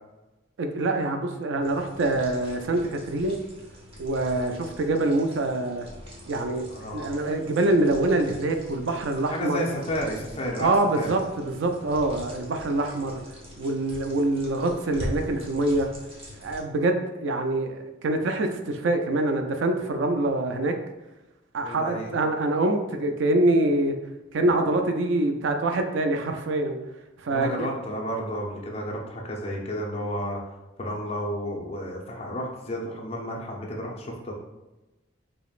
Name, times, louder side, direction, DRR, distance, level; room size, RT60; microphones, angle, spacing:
voice 1, 0.6-3.4 4.0-5.9 6.3-9.6 10.6-13.2 13.6-15.9 16.4-20.7 21.5-23.9 24.3-26.8 27.2-27.6, right 2 dB, 70° right, 5 dB, 0.4 m, -25 dB
sound 1, 1.6-16.6, equal, 30° right, 0.8 m, -43 dB
voice 2, 6.7-7.2 9.3-11.2 21.6-22.1 27.3-30.4 30.8-34.3, equal, 30° left, -1 dB, 0.7 m, -32 dB
5.0 x 2.9 x 2.4 m, 1.0 s
head